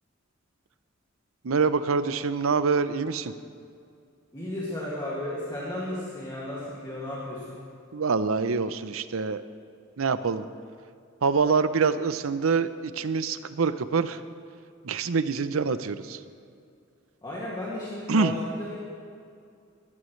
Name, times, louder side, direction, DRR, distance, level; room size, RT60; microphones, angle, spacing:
voice 1, 1.4-3.3 7.9-9.4 10.0-10.5 11.2-14.2 14.8-16.2 18.1-18.3, right 5 dB, 90° right, 13 dB, 0.6 m, -25 dB
voice 2, 4.3-7.6 17.2-18.8, left 1 dB, 20° left, -8 dB, 2.2 m, -34 dB
20.5 x 14.5 x 3.2 m, 2.4 s
head